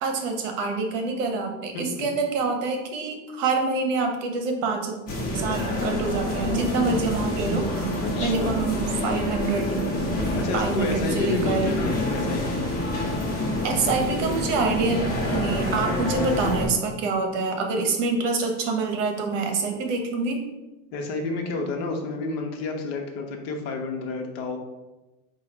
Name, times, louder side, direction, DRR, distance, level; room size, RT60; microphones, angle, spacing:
voice 1, 0.0-5.0 5.3-7.8 8.2-9.7 10.5-11.8 13.6-15.0 15.3-20.5, right 4 dB, 65° right, 4 dB, 1.0 m, -26 dB
voice 2, 1.7-2.1 8.0-8.6 10.3-12.6 20.9-24.6, left 3 dB, 50° left, 2 dB, 0.8 m, -30 dB
sound 1, 5.1-16.7, left 1 dB, 20° left, 1.0 m, -27 dB
4.7 x 2.4 x 4.3 m, 1.1 s
supercardioid pair, 155°, 40 cm